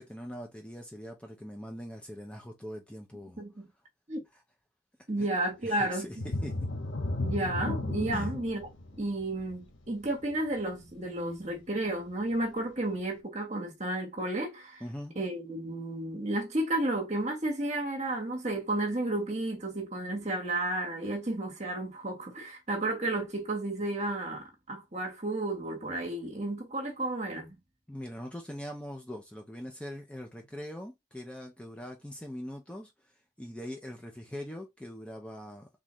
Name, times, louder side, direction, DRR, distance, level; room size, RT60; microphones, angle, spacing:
voice 1, 0.0-3.4 4.3-4.4 5.2-5.3 5.6-6.5 8.1-8.3 14.8-15.1 27.9-32.9 33.4-35.7, equal, 5° left, 0.8 m, -42 dB
voice 2, 3.4-3.7 4.1-4.2 5.1-6.1 7.2-8.7 9.0-14.8 15.1-27.5, right 2 dB, 35° right, 1.4 m, -32 dB
sound 1, 6.1-11.6 12.0-12.2 12.7-12.8, left 2 dB, 85° left, 1.3 m, -35 dB
4.0 x 3.7 x 3.1 m
head